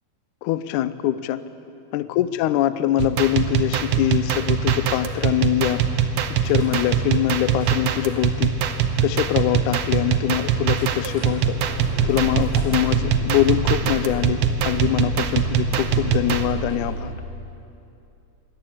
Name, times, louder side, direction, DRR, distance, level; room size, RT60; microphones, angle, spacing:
voice 1, 0.4-1.4 1.9-5.8 6.4-8.5 9.0-11.6 12.0-17.1, left 13 dB, 90° left, 14 dB, 1.7 m, -23 dB
sound 1, 3.0-16.5, right 8 dB, 75° right, 1.5 m, -22 dB
Car / Engine starting / Idling, 6.4-7.1 7.4-8.2 8.9-9.0 9.1-9.2 9.5-9.8 10.8-16.9, left 1 dB, 30° left, 8.2 m, -32 dB
23.0 x 17.0 x 8.7 m, 2.7 s
omnidirectional pair, 4.4 m